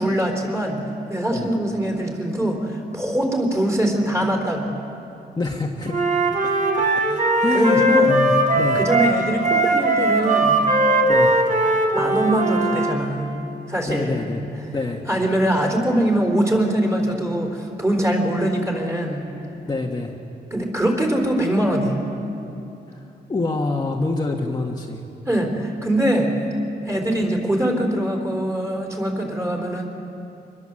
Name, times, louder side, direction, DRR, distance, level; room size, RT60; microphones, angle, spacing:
voice 1, 0.0-4.7 7.5-8.1 8.7-10.6 11.9-13.4 13.7-14.2 15.1-19.3 20.5-22.0 25.3-26.3 26.9-29.9, right 1 dB, 15° right, 2 dB, 3.9 m, -22 dB
voice 2, 5.4-6.0 6.8-7.8 8.1-8.8 11.1-11.3 13.9-14.4 14.7-15.0 19.7-20.1 22.9-23.0 23.3-25.0, left 3 dB, 25° left, -1 dB, 1.4 m, -26 dB
Wind instrument woodwind instrument, 5.9-12.9, right 1 dB, 45° right, 3.4 m, -19 dB
25.0 x 21.0 x 7.7 m, 2.9 s
wide cardioid pair, 145°, 18 cm